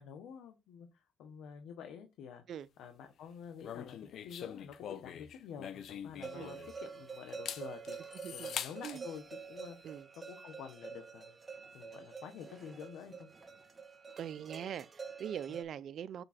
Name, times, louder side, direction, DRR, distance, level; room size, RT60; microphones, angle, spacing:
voice 1, 0.0-2.4 2.8-3.9 4.2-11.3 11.7-13.3 15.5-15.6, left 7 dB, 85° left, 1.2 m, -49 dB
sound 1, 3.6-6.9 7.3-9.0, left 9 dB, 70° left, 0.7 m, -43 dB
sound 2, 6.2-15.6, right 5 dB, 30° right, 1.5 m, -48 dB
voice 2, 14.2-16.2, right 9 dB, 65° right, 0.5 m, -42 dB
7.0 x 4.7 x 4.3 m
cardioid pair, 90°, 0 cm